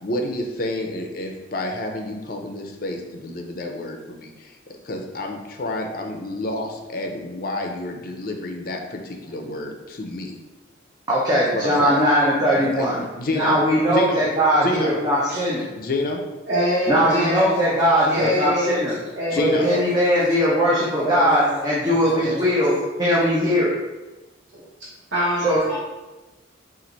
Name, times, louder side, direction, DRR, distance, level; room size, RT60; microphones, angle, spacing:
voice 1, 0.0-4.5 4.8-10.4 11.3-12.0 12.5-13.6 13.9-14.2 14.6-14.9 15.8-16.2 18.2-18.3 19.3-19.7, left 1 dB, 50° left, 3 dB, 0.5 m, -29 dB
voice 2, 11.1-13.0 13.3-15.7 16.9-19.0 19.4-23.8 25.4-25.6, equal, 20° right, -7 dB, 0.6 m, -20 dB
voice 3, 16.5-17.5 18.1-18.8 19.2-19.9 20.9-21.7 22.0-22.6 24.5-25.8, equal, 75° right, -8 dB, 1.0 m, -25 dB
4.4 x 2.5 x 3.9 m, 1.1 s
head